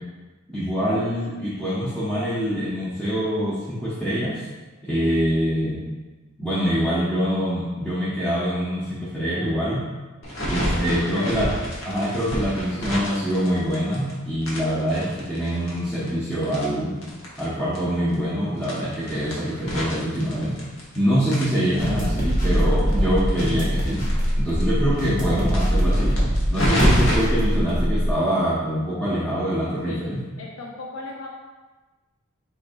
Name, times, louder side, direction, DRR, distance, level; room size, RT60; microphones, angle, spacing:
voice 1, 0.5-4.4 4.8-5.8 6.4-9.8 10.4-11.5 11.8-17.0 17.4-20.6 20.9-24.1 24.4-30.2, equal, 5° left, -10 dB, 0.8 m, -24 dB
sound 1, 10.2-14.1 14.4-17.5 17.7-17.8 18.1-18.2 18.6-21.0 21.3-24.3 24.6-24.7 24.9-25.0 25.4-27.2, equal, 70° left, 1.1 m, -27 dB
voice 2, 10.4-11.4 29.9-30.1 30.4-31.3, left 2 dB, 90° left, -1 dB, 0.6 m, -36 dB
sound 2, 21.8-28.1, equal, 40° left, 1.1 m, -22 dB
4.8 x 4.0 x 2.6 m, 1.2 s
head